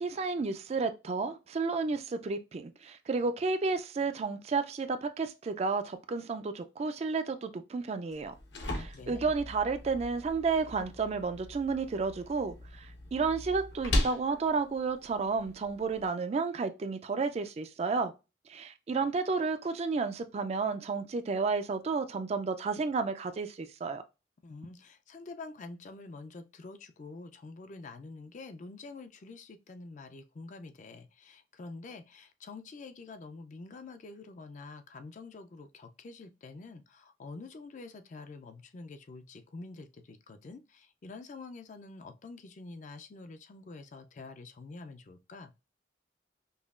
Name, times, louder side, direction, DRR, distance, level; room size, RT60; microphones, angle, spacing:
voice 1, 0.0-8.3 8.7-18.1 18.5-24.0, right 4 dB, 35° right, 0.3 m, -32 dB
sound 1, 8.1-16.1, left 1 dB, 75° left, 0.9 m, -38 dB
voice 2, 8.6-9.3 24.4-45.5, left 3 dB, 45° left, 0.4 m, -47 dB
5.4 x 2.3 x 2.3 m
head